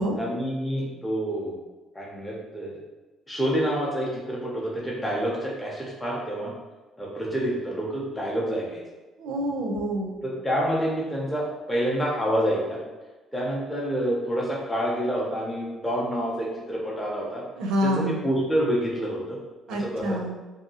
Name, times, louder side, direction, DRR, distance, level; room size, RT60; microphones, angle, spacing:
voice 1, 0.2-1.6 1.9-2.8 3.3-6.5 7.0-8.8 10.2-12.8 13.3-17.4 17.8-19.4 19.7-20.2, equal, 5° left, -5 dB, 0.5 m, -28 dB
voice 2, 9.2-10.2 17.6-18.2 19.7-20.4, equal, 85° right, 1 dB, 0.5 m, -27 dB
2.7 x 2.6 x 2.7 m, 1.2 s
cardioid pair, 170°, 0 cm